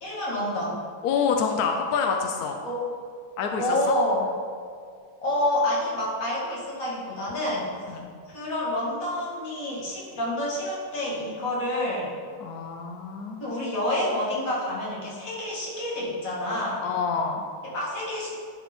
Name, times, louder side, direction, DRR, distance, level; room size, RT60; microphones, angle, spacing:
voice 1, 0.0-0.8 2.6-2.9 3.6-4.3 5.2-7.7 8.3-12.1 13.4-16.8 17.6-18.4, left 1 dB, 45° left, -6 dB, 2.3 m, -28 dB
voice 2, 1.0-2.6 3.4-4.0 7.9-8.1 12.4-13.4 16.8-17.4, left 5 dB, 75° left, 3 dB, 0.9 m, -27 dB
11.0 x 4.3 x 4.2 m, 2.1 s
omnidirectional pair, 2.2 m